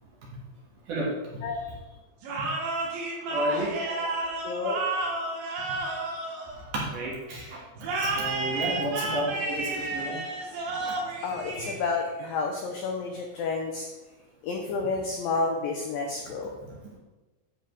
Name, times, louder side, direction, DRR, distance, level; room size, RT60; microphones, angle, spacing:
sound 1, 2.2-7.1 7.8-12.2, right 2 dB, 90° right, 3.9 m, -31 dB
voice 1, 3.3-3.7 6.7-7.6 7.9-10.2 10.7-10.9, right 1 dB, 55° right, -4 dB, 2.7 m, -31 dB
voice 2, 4.4-4.8 11.2-13.9 14.4-16.5, left 4 dB, 80° left, 2 dB, 2.0 m, -30 dB
9.7 x 8.0 x 3.2 m, 1.1 s
omnidirectional pair, 5.1 m